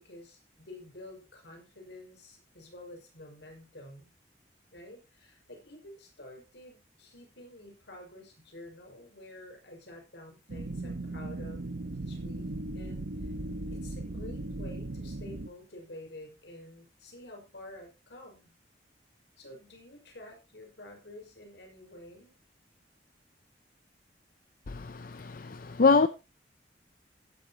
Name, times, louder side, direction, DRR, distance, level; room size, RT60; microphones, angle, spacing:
voice 1, 0.0-4.1 4.7-12.5 12.7-13.1 13.7-18.5 19.4-22.3, left 1 dB, 75° left, 5.7 m, -49 dB
sound 1, 10.5-15.5, right 2 dB, 70° right, 0.9 m, -37 dB
voice 2, 24.7-26.1, left 4 dB, 50° left, 0.6 m, -25 dB
15.0 x 11.5 x 3.0 m
head